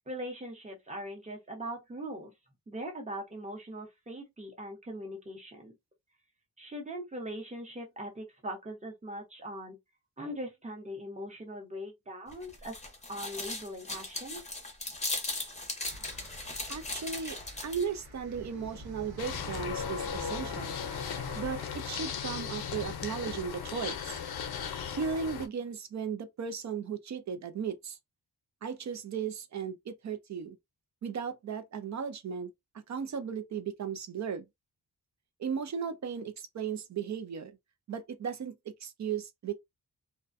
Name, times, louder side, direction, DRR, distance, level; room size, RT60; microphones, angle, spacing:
voice 1, 0.1-2.3 2.7-5.7 6.6-9.8 10.2-12.8 13.1-14.4, equal, 20° right, 0.8 m, -41 dB
sound 1, 12.3-18.0, left 2 dB, 20° left, 0.6 m, -38 dB
sound 2, 15.8-21.8, equal, 80° right, 1.2 m, -47 dB
voice 2, 16.7-17.4 17.6-20.8 21.3-24.2 24.9-28.0 28.6-30.6 31.0-32.5 32.9-34.5 35.4-37.6 37.9-38.6 38.8-39.5, right 6 dB, 50° right, 0.4 m, -36 dB
sound 3, 19.2-25.5, left 7 dB, 75° left, 0.6 m, -37 dB
2.5 x 2.1 x 2.4 m
wide cardioid pair, 160°, 38 cm